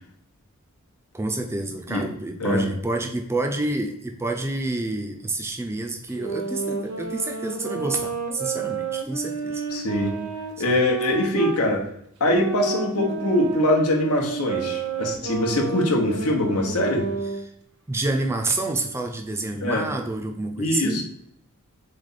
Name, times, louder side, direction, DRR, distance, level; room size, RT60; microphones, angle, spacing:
voice 1, 1.1-9.6 10.7-10.8 17.9-21.0, right 2 dB, 10° right, 3 dB, 0.4 m, -28 dB
sound 1, 6.1-11.6 12.2-17.4, right 5 dB, 80° right, 0.9 m, -30 dB
voice 2, 9.7-10.2 10.6-11.9 12.2-17.1 19.6-19.9 20.6-21.0, left 1 dB, 80° left, 1 dB, 1.0 m, -23 dB
4.0 x 3.3 x 4.0 m, 0.73 s
head